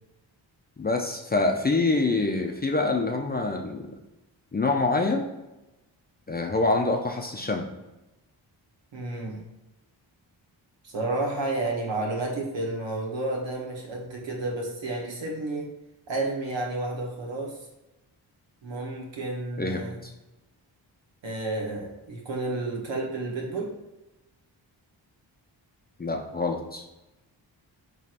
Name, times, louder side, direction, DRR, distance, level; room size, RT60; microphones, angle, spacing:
voice 1, 0.8-3.9 4.5-5.3 6.3-7.6 19.6-20.1 26.0-26.8, left 3 dB, 20° left, 2 dB, 0.5 m, -26 dB
voice 2, 8.9-9.4 10.8-15.7 16.1-17.6 18.6-20.0 21.2-23.7, right 2 dB, 65° right, -1 dB, 1.2 m, -31 dB
4.2 x 3.1 x 2.5 m, 0.99 s
supercardioid pair, 45°, 47 cm